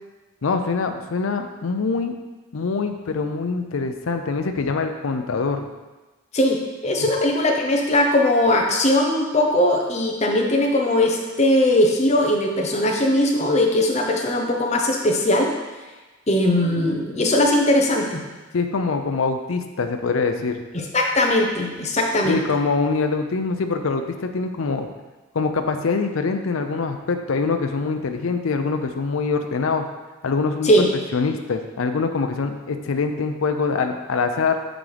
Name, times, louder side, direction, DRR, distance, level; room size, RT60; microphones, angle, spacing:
voice 1, 0.4-2.2 2.5-5.7 18.5-20.6 22.2-24.9 25.3-29.9 30.2-30.7 31.1-34.6, left 4 dB, 80° left, 6 dB, 0.5 m, -24 dB
voice 2, 6.3-15.5 16.3-18.2 20.7-22.4 30.6-30.9, left 1 dB, 35° left, 1 dB, 0.8 m, -19 dB
6.2 x 6.0 x 3.4 m, 1.2 s
head